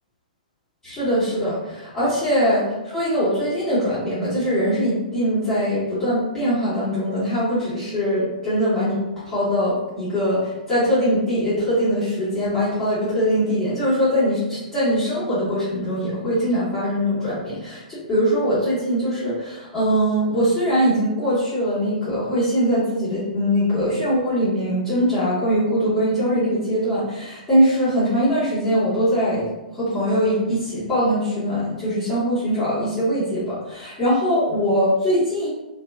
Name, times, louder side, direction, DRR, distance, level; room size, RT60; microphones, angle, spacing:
voice 1, 0.8-9.0 9.2-29.5 29.7-35.5, equal, 10° left, -13 dB, 1.1 m, -22 dB
2.3 x 2.3 x 2.3 m, 0.99 s
figure-of-eight pair, 115°, 5 cm